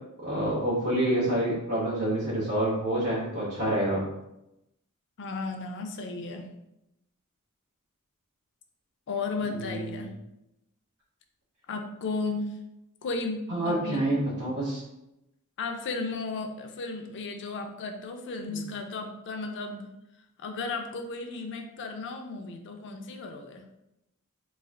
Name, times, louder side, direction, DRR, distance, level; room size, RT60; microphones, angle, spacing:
voice 1, 0.2-4.0 9.5-10.1 13.5-14.8 18.5-18.6, right 1 dB, 80° right, -8 dB, 1.2 m, -28 dB
voice 2, 5.2-6.5 9.1-10.1 11.7-12.5 13.0-14.1 15.6-19.9 20.4-23.6, left 3 dB, 55° left, 4 dB, 0.4 m, -34 dB
3.2 x 2.4 x 3.6 m, 0.88 s
head